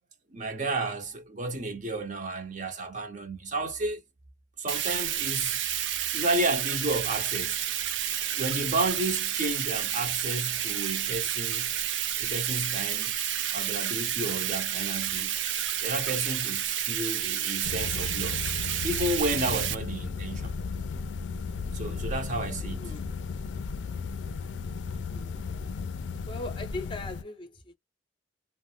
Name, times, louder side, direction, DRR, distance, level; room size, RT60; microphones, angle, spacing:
voice 1, 0.3-4.0 4.6-5.6 6.1-7.6 8.4-11.7 12.2-13.1 13.5-15.4 15.8-18.5 18.8-20.5 21.7-22.9, right 2 dB, 45° right, 0.7 m, -32 dB
Bathtub (filling or washing), 4.7-19.7, right 10 dB, 85° right, 0.5 m, -30 dB
sound 1, 17.6-27.2, left 5 dB, 80° left, 0.4 m, -35 dB
voice 2, 22.8-23.1 25.1-25.4 26.3-27.5, left 2 dB, 25° left, 0.6 m, -39 dB
2.4 x 2.0 x 3.2 m
head